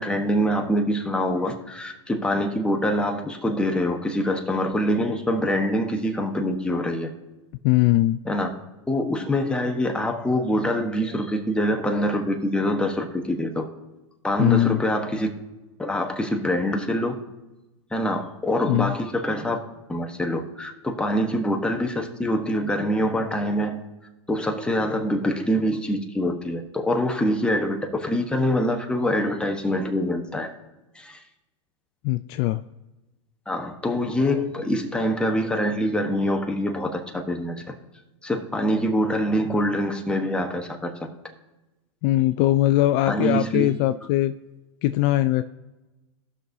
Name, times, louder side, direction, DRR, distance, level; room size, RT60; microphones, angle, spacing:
voice 1, 0.0-7.1 8.2-8.5 8.9-13.6 14.2-15.3 15.8-17.2 17.9-19.6 19.9-23.8 24.3-30.5 30.9-31.2 33.5-37.7 38.2-40.9 43.1-43.8, equal, 5° left, 3 dB, 1.0 m, -25 dB
voice 2, 7.6-8.2 14.4-14.8 18.7-18.9 32.0-32.6 42.0-44.3 44.8-45.4, left 15 dB, 50° left, 10 dB, 0.4 m, -20 dB
17.5 x 6.1 x 2.7 m, 1.1 s
hypercardioid pair, 120°, 16 cm